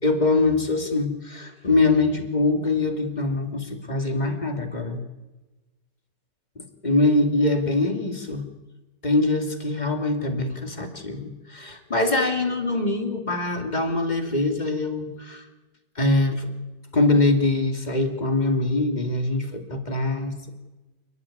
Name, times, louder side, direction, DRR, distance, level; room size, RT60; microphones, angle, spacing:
voice 1, 0.0-5.0 6.6-8.4 9.0-15.4 16.0-16.5 16.9-20.5, left 2 dB, 25° left, 5 dB, 2.4 m, -23 dB
28.5 x 11.5 x 9.9 m, 1.1 s
omnidirectional pair, 1.9 m